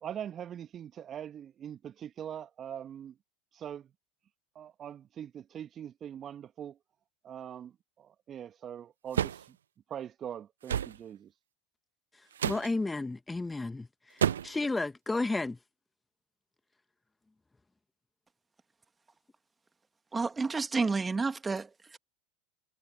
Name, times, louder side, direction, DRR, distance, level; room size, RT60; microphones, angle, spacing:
voice 1, 0.0-3.1 3.5-3.9 4.5-6.8 7.2-9.6 9.9-11.3, right 9 dB, 40° right, 1.5 m, -42 dB
sound 1, 9.1-9.5 10.7-11.0 12.4-12.7 14.2-14.6, right 9 dB, 80° right, 0.5 m, -29 dB
voice 2, 12.4-15.6, left 2 dB, 10° left, 1.3 m, -32 dB
voice 3, 20.1-22.0, right 4 dB, 20° right, 2.1 m, -30 dB
hypercardioid pair, 80°, 0 cm